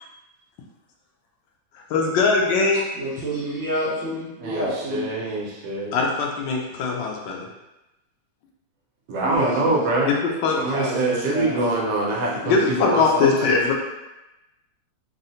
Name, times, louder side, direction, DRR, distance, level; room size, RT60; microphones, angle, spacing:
voice 1, 1.9-2.8 5.9-7.5 10.1-10.6 12.4-13.7, left 4 dB, 85° left, 0 dB, 1.3 m, -21 dB
voice 2, 2.9-5.1 9.2-9.9 10.6-11.6, equal, 55° right, -9 dB, 0.9 m, -28 dB
voice 3, 4.4-6.0 9.1-10.1 10.6-13.6, right 2 dB, 75° right, -3 dB, 1.3 m, -25 dB
3.8 x 2.1 x 2.7 m, 0.98 s
omnidirectional pair, 2.0 m